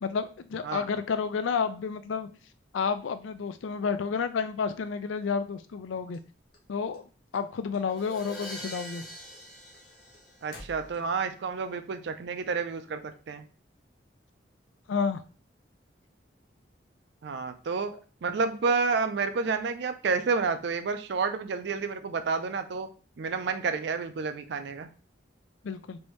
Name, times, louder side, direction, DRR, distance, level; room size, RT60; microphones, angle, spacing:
voice 1, 0.0-2.3 2.7-6.2 6.7-7.0 7.3-9.1 14.9-15.2 25.6-26.0, left 5 dB, 90° left, 12 dB, 0.4 m, -30 dB
sound 1, 6.1-7.4 7.7-8.3 8.5-11.3, left 1 dB, 50° left, 0.9 m, -51 dB
Crash cymbal, 7.9-10.8, equal, ahead, 0.7 m, -43 dB
voice 2, 10.4-13.5 17.2-17.9 18.2-22.9 23.2-24.9, right 4 dB, 65° right, 9 dB, 0.4 m, -30 dB
3.4 x 2.6 x 3.0 m, 0.38 s
head